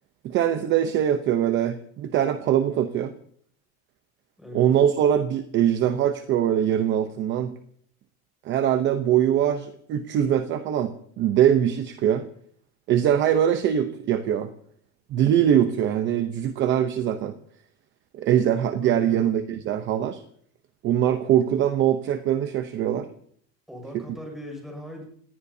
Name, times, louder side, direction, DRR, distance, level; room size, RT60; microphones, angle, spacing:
voice 1, 0.2-3.1 4.5-7.5 8.4-12.2 12.9-14.5 15.1-17.3 18.1-20.2 20.8-23.1 23.9-24.0, right 10 dB, 35° right, 8 dB, 0.8 m, -22 dB
voice 2, 18.8-19.2 23.7-25.0, left 1 dB, ahead, 1 dB, 6.1 m, -38 dB
28.0 x 18.5 x 2.8 m, 0.62 s
cardioid pair, 180°, 35 cm